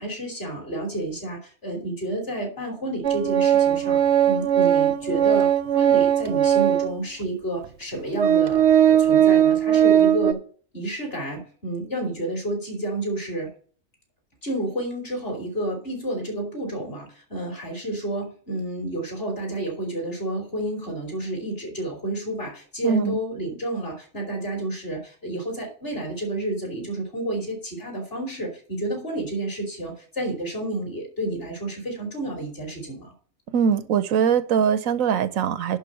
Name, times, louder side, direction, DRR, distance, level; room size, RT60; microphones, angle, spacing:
voice 1, 0.0-4.0 4.2-10.4 10.7-13.5 14.4-33.1, right 1 dB, 45° left, 2 dB, 3.5 m, -30 dB
Organ, 3.0-7.0 7.6-7.7 8.2-10.3, right 10 dB, 65° right, 0.8 m, -19 dB
voice 2, 22.8-23.2 33.5-35.8, right 7 dB, 90° right, 14 dB, 1.2 m, -22 dB
11.0 x 3.9 x 6.5 m, 0.43 s
omnidirectional pair, 1.4 m